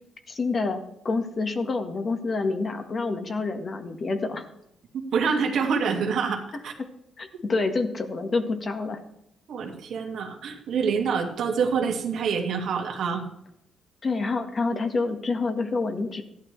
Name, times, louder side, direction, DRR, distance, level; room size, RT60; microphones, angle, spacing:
voice 1, 0.3-4.5 6.8-6.9 7.2-9.0 14.0-16.2, left 3 dB, 40° left, 5 dB, 1.6 m, -27 dB
voice 2, 5.1-6.7 9.5-13.2, right 6 dB, 70° right, 2 dB, 2.1 m, -26 dB
15.0 x 11.5 x 3.3 m, 0.79 s
cardioid pair, 90°, 0 cm